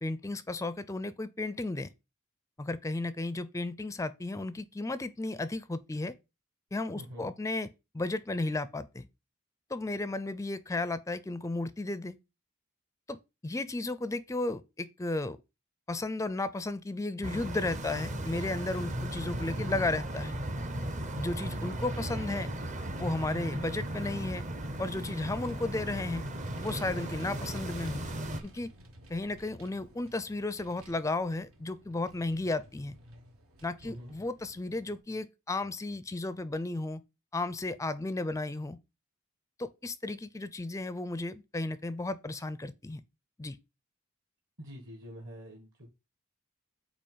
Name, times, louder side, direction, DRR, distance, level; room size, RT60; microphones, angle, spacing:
voice 1, 0.0-1.9 2.6-6.2 6.7-9.1 9.7-12.2 13.1-13.2 13.4-15.4 15.9-20.3 21.2-22.5 23.0-24.4 24.8-26.2 26.6-28.1 28.4-28.7 29.1-32.9 33.6-37.0 37.3-38.8 39.6-43.0 43.4-43.6, left 2 dB, 15° left, 0.4 m, -34 dB
voice 2, 6.9-7.3 18.8-19.2 33.8-34.1 44.6-45.9, equal, 55° right, 1.7 m, -46 dB
sound 1, 17.2-28.4, right 1 dB, 35° right, 0.7 m, -36 dB
Vehicle, 24.1-35.0, right 1 dB, 85° right, 1.6 m, -55 dB
8.5 x 3.0 x 5.6 m
head